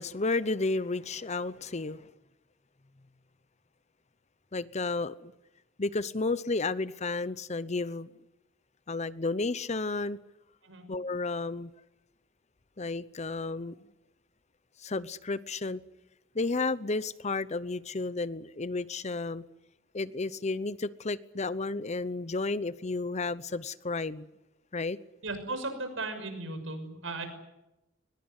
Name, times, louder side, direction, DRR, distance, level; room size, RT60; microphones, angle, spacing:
voice 1, 0.0-2.0 4.5-5.3 5.8-8.1 8.9-10.2 10.9-11.7 12.8-13.7 14.8-15.8 16.3-19.4 19.9-24.3 24.7-25.0, left 3 dB, 35° left, 0.8 m, -32 dB
voice 2, 25.2-27.3, right 2 dB, 75° right, 6.1 m, -36 dB
22.5 x 21.0 x 9.7 m
head